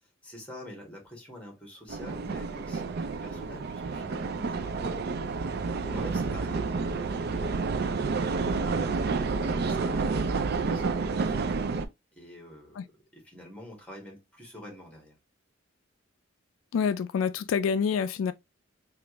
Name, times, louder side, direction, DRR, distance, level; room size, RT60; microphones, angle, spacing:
voice 1, 0.2-5.2 5.8-11.6 12.1-15.1, left 1 dB, 5° left, 1.4 m, -47 dB
sound 1, 1.9-11.8, right 4 dB, 55° right, 0.4 m, -30 dB
voice 2, 16.7-18.3, left 6 dB, 90° left, 0.3 m, -27 dB
3.3 x 2.5 x 2.9 m
head